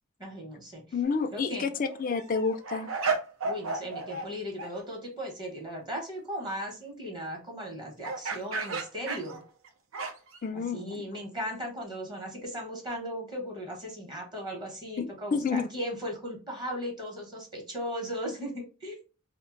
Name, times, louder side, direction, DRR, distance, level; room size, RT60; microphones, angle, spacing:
voice 1, 0.2-0.8 1.3-1.7 3.4-9.4 10.5-19.0, equal, 20° right, 1.0 m, -37 dB
voice 2, 0.9-2.9 10.4-11.0 15.0-15.7, left 5 dB, 40° left, 0.4 m, -30 dB
sound 1, 1.0-1.3 1.7-4.3 4.6-4.7 8.0-10.4, right 4 dB, 75° right, 0.6 m, -33 dB
2.6 x 2.2 x 3.8 m
head